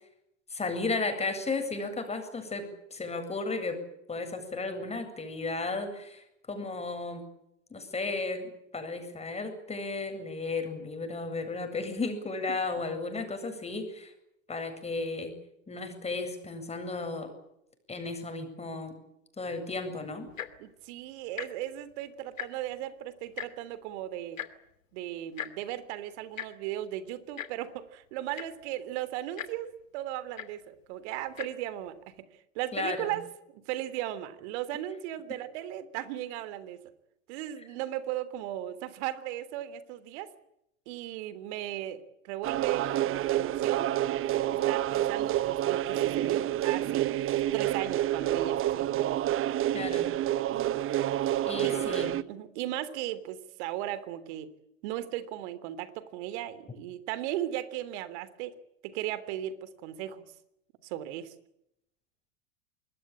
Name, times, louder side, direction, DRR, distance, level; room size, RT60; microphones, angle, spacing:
voice 1, 0.5-3.8 4.1-7.2 7.7-14.1 14.5-15.3 15.7-17.3 17.9-19.0 19.4-20.3 32.7-33.2 49.7-50.1 51.4-52.1, left 3 dB, 15° left, 7 dB, 8.0 m, -34 dB
Tick-tock, 20.3-20.6 21.3-21.5 21.8-21.9 22.2-22.7 23.4-23.5 24.4-24.5 25.4-25.5 26.4-26.5 27.4-27.5 28.1-28.2 28.3-28.7 29.4-29.5 30.4-30.5 31.3-31.5 32.2-32.3, left 9 dB, 85° left, 2.8 m, -38 dB
voice 2, 20.6-24.4 24.9-32.3 32.6-33.3 33.5-36.8 37.3-40.3 40.9-43.9 44.5-48.9 50.5-50.8 51.6-52.0 52.3-54.5 54.8-58.5 58.8-60.3 60.8-61.3, right 13 dB, 60° right, 15 dB, 3.4 m, -37 dB
sound 1, 42.4-52.2, right 13 dB, 35° right, 1.0 m, -28 dB
26.0 x 21.0 x 8.9 m, 0.80 s
hypercardioid pair, 95°, 38 cm